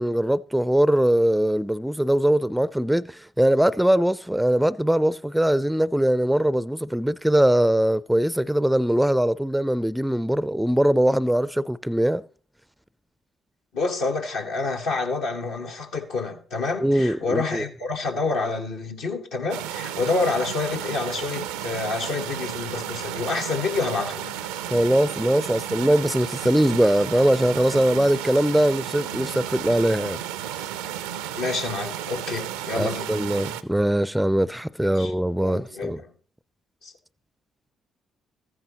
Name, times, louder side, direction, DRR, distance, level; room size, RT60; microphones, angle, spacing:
voice 1, 0.0-12.2 16.8-17.6 24.7-30.2 32.8-36.0, right 1 dB, 5° right, 0.4 m, -21 dB
voice 2, 13.7-24.3 31.3-33.2 34.8-35.1 35.4-36.1 36.8-36.9, left 3 dB, 70° left, 1.1 m, -28 dB
sound 1, 19.5-33.6, right 11 dB, 75° right, 0.4 m, -33 dB
14.0 x 9.4 x 2.9 m
figure-of-eight pair, 45°, 0 cm